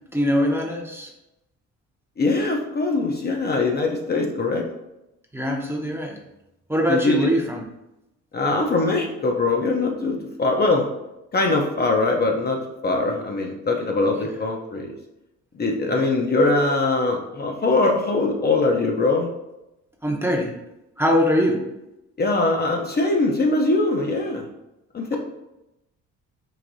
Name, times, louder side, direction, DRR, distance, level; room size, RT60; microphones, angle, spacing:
voice 1, 0.1-1.1 5.3-6.2 6.7-7.7 14.2-14.3 15.9-16.1 20.0-20.5 21.0-21.6, equal, 10° right, 0 dB, 0.6 m, -22 dB
voice 2, 2.2-4.6 6.9-7.3 8.3-10.9 11.3-15.0 15.5-19.3 22.2-24.4 24.9-25.2, left 3 dB, 35° left, 1 dB, 0.5 m, -22 dB
4.7 x 2.6 x 2.5 m, 0.91 s
cardioid pair, 90°, 30 cm